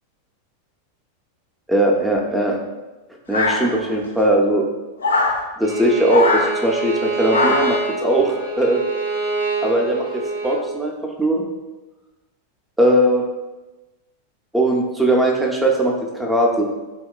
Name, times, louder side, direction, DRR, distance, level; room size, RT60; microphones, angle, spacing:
voice 1, 1.7-2.6 3.3-4.7 5.6-8.8 9.6-11.4 12.8-13.2 14.5-16.6, right 1 dB, 5° right, -1 dB, 0.5 m, -19 dB
sound 1, 3.3-4.1 5.0-5.4 6.1-6.5 7.3-7.8, left 3 dB, 70° left, 0.3 m, -20 dB
Bowed string instrument, 5.6-10.6, right 3 dB, 70° right, 0.6 m, -25 dB
3.0 x 2.8 x 2.2 m, 1.1 s
figure-of-eight pair, 90°, 0 cm